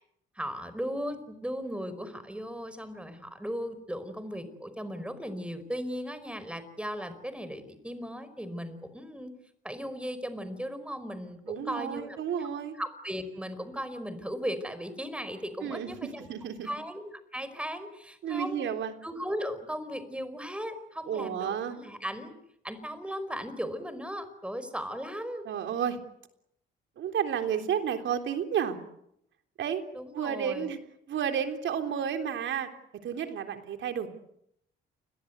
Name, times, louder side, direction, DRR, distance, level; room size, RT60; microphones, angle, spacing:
voice 1, 0.3-9.3 9.6-12.2 12.8-16.3 16.6-18.7 19.0-22.3 22.6-25.5 29.9-30.7, equal, 5° right, 12 dB, 4.9 m, -37 dB
voice 2, 11.5-12.8 15.6-16.7 18.2-18.9 21.1-21.8 25.5-26.0 27.0-28.8 29.6-29.8 30.1-30.8 31.1-34.1, right 8 dB, 70° right, 7 dB, 3.5 m, -31 dB
29.0 x 22.0 x 8.2 m, 0.76 s
cardioid pair, 90°, 20 cm